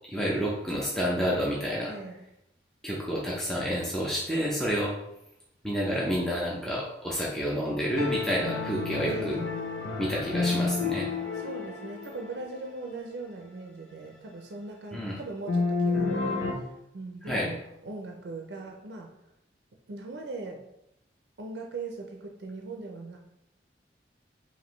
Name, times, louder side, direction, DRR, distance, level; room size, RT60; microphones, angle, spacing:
voice 1, 0.1-1.9 2.8-4.9 5.6-9.4 10.0-11.1 14.9-15.2 17.2-17.5, equal, 5° left, -5 dB, 0.5 m, -29 dB
voice 2, 1.9-2.2 9.1-9.4 11.3-19.1 19.9-20.6 21.4-23.2, right 3 dB, 70° right, 1 dB, 0.5 m, -40 dB
sound 1, 7.8-12.6 15.5-16.5, left 4 dB, 85° left, 0.8 m, -30 dB
5.1 x 2.6 x 3.1 m, 0.84 s
head